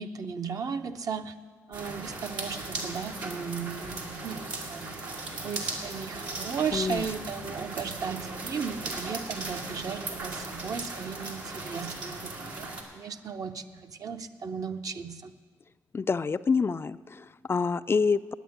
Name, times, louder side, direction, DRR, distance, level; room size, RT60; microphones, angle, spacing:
voice 1, 0.0-1.3 1.7-4.9 5.4-15.3, right 6 dB, 60° right, 7 dB, 0.7 m, -36 dB
sound 1, 1.7-12.8, right 2 dB, 85° right, 1.9 m, -37 dB
voice 2, 6.7-7.0 15.9-18.3, left 5 dB, 35° left, 13 dB, 0.3 m, -27 dB
9.2 x 8.6 x 9.5 m, 1.5 s
supercardioid pair, 55°, 7 cm